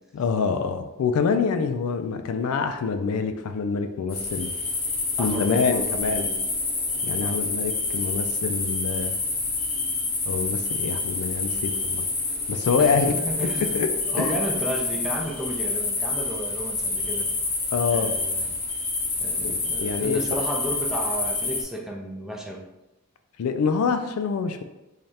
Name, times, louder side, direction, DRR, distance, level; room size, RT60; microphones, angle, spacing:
voice 1, 0.1-4.5 5.2-6.3 7.0-9.1 10.3-12.1 12.5-13.1 13.7-13.9 14.2-14.4 17.7-18.1 19.4-20.2 23.4-24.6, left 5 dB, 75° left, 7 dB, 0.4 m, -26 dB
sound 1, 4.1-21.6, left 3 dB, 45° left, 1.0 m, -28 dB
voice 2, 5.2-6.4 7.2-7.4 12.8-13.7 14.1-17.3 17.9-18.5 19.2-22.6, right 1 dB, ahead, -1 dB, 0.4 m, -33 dB
3.2 x 2.4 x 4.1 m, 0.96 s
head